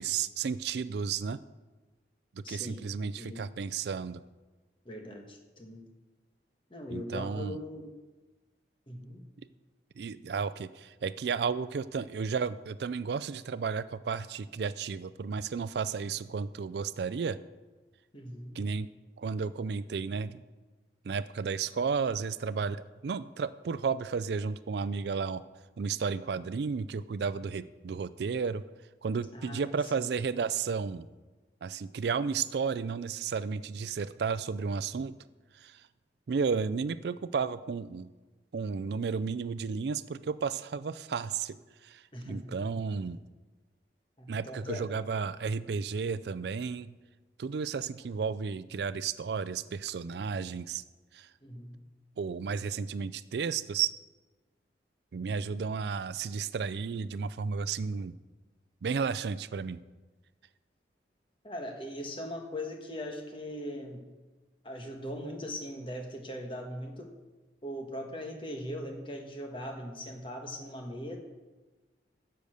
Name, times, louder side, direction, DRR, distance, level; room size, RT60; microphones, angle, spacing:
voice 1, 0.0-1.4 2.3-4.2 6.9-7.6 10.0-17.4 18.5-18.9 19.2-20.4 21.0-25.4 25.8-28.6 29.0-31.1 31.6-35.2 35.5-35.8 36.3-38.1 38.5-41.6 41.8-43.2 44.3-46.9 47.4-50.8 51.1-51.3 52.2-53.9 55.1-58.1 58.8-59.8, right 5 dB, 70° right, 15 dB, 0.4 m, -33 dB
voice 2, 2.4-2.8 3.2-3.5 4.8-5.8 6.7-7.9 8.9-9.2 18.1-18.6 29.3-29.8 42.1-42.6 44.2-44.9 51.4-51.8 61.4-64.0 64.6-67.1 67.6-71.2, left 1 dB, 30° left, 3 dB, 1.4 m, -40 dB
10.5 x 6.9 x 6.4 m, 1.2 s
head